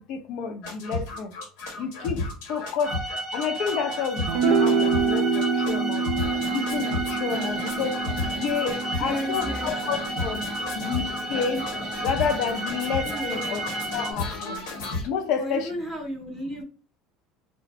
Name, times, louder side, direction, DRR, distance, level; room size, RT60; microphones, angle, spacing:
voice 1, 0.0-1.3 1.8-3.0 3.3-6.0 6.5-8.0 8.3-10.4 10.8-11.7 12.0-13.6 13.9-14.6 15.1-15.7, left 6 dB, 60° left, 0.5 m, -30 dB
sound 1, 0.6-15.1, left 2 dB, 85° left, 1.0 m, -33 dB
sound 2, 2.8-14.1, right 2 dB, 35° right, 0.8 m, -33 dB
sound 3, 4.3-10.8, right 5 dB, 75° right, 0.4 m, -27 dB
voice 2, 9.0-9.7 13.0-13.6 15.4-16.6, equal, ahead, 0.6 m, -33 dB
2.4 x 2.1 x 2.8 m
cardioid pair, 130°, 0 cm